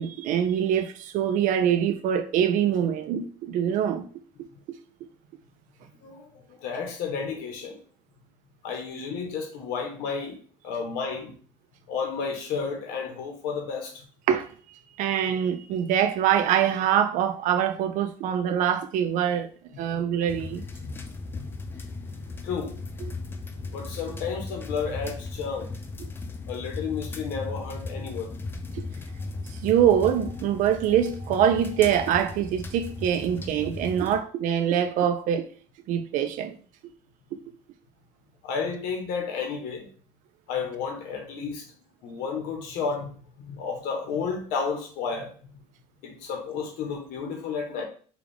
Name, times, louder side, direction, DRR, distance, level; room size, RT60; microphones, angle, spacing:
voice 1, 0.0-4.1 14.3-19.5 19.8-20.6 28.7-28.8 29.6-35.5 35.9-36.5, right 9 dB, 60° right, 0.5 m, -24 dB
voice 2, 6.0-7.8 8.6-10.4 10.6-11.3 11.9-14.0 20.8-21.0 21.3-21.5 22.1-22.7 23.5-25.7 26.5-28.3 38.4-39.9 40.5-41.6 42.0-45.3 46.0-47.8, left 5 dB, 80° left, 1.2 m, -32 dB
sound 1, 20.3-34.2, left 3 dB, 15° left, 0.3 m, -37 dB
4.8 x 2.4 x 3.5 m
cardioid pair, 160°, 15 cm